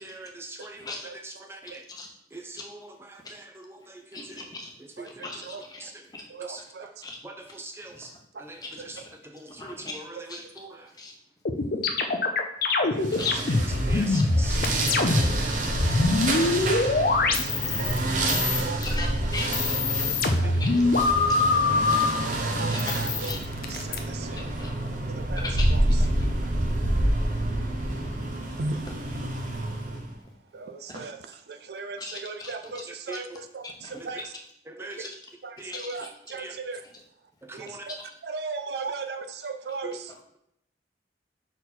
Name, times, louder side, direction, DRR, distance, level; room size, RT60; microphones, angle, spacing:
voice 1, 0.0-0.8 1.2-1.8 2.3-2.8 3.1-4.4 5.0-5.1 5.8-5.9 6.4-6.9 7.2-8.1 8.4-8.6 8.9-9.0 9.2-10.2 10.6-10.7 13.9-14.6 16.1-16.2 20.4-20.5 32.9-33.2 34.7-35.1 35.6-35.8 36.3-36.6 37.4-37.8 39.8-40.0, right 2 dB, 15° right, 4 dB, 0.6 m, -42 dB
voice 2, 0.6-1.1 1.6-2.6 3.2-3.4 4.1-6.6 7.0-9.2 9.5-10.0 10.3-11.1 11.9-12.0 13.1-13.6 14.1-14.2 14.5-15.3 16.3-16.4 17.9-18.4 18.7-19.8 20.6-20.7 21.6-21.7 22.5-23.4 24.0-24.1 24.3-24.7 25.1-26.3 30.2-30.6 30.9-31.0 32.0-32.9 33.6-34.3 35.0-35.1 35.7-36.4 36.7-37.0 37.9-38.1 38.8-38.9 40.1-40.2, left 3 dB, 20° left, 1 dB, 0.9 m, -41 dB
voice 3, 6.3-6.9 12.8-13.1 13.9-14.0 15.0-15.1 17.2-17.5 17.8-18.8 20.0-20.5 22.3-22.8 23.0-23.3 23.7-24.4 25.1-25.4 28.6-28.8 30.5-31.2 31.5-33.6 33.9-34.2 34.8-34.9 35.7-36.8 37.5-37.9 38.3-40.1, right 4 dB, 65° right, 8 dB, 0.5 m, -37 dB
sound 1, 11.5-18.0 18.3-18.9 19.4-22.1 22.8-24.0, left 3 dB, 55° left, 0.6 m, -24 dB
sound 2, 13.0-30.1, right 1 dB, 45° right, 0.8 m, -28 dB
5.8 x 4.5 x 4.1 m, 0.73 s
head